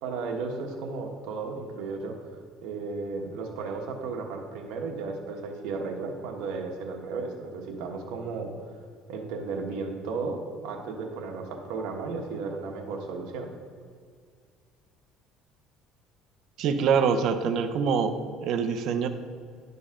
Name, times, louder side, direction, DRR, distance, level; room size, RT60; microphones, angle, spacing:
voice 1, 0.0-2.1 2.6-8.5 9.1-13.5, right 4 dB, 80° right, 2 dB, 1.2 m, -34 dB
voice 2, 16.6-18.1 18.4-19.1, right 6 dB, 60° right, 8 dB, 0.6 m, -24 dB
11.0 x 4.0 x 3.7 m, 2.1 s
cardioid pair, 135°, 0 cm